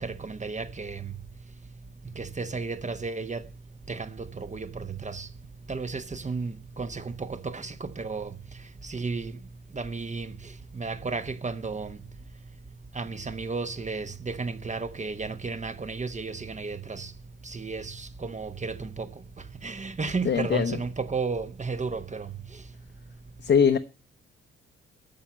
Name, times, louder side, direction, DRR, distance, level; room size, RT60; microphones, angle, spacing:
voice 1, 0.0-1.0 2.2-3.4 3.9-4.1 4.4-5.3 5.7-8.3 8.9-9.3 9.8-10.3 10.8-11.9 13.0-17.1 17.5-18.0 18.2-19.1 19.6-22.3, right 4 dB, 25° right, 1.1 m, -33 dB
voice 2, 20.2-20.8 23.4-23.8, left 7 dB, 40° left, 0.9 m, -21 dB
8.9 x 7.1 x 8.8 m
figure-of-eight pair, 40°, 29 cm